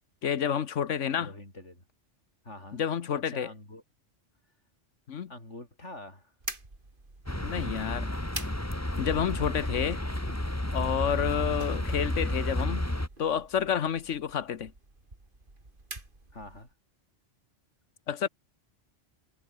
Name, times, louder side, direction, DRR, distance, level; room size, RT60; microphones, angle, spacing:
voice 1, 0.2-1.3 2.7-3.5 5.1-5.3 7.4-8.1 9.0-10.0 10.7-12.9 13.2-14.7 18.1-18.3, left 8 dB, 90° left, 1.4 m, -29 dB
voice 2, 1.2-1.8 2.4-2.8 3.1-3.8 5.3-6.3 16.3-16.7, left 1 dB, 75° left, 7.4 m, -45 dB
sound 1, 6.4-16.7, right 2 dB, 45° right, 3.5 m, -46 dB
sound 2, 7.3-13.1, left 1 dB, 10° left, 2.3 m, -31 dB
omnidirectional pair, 1.2 m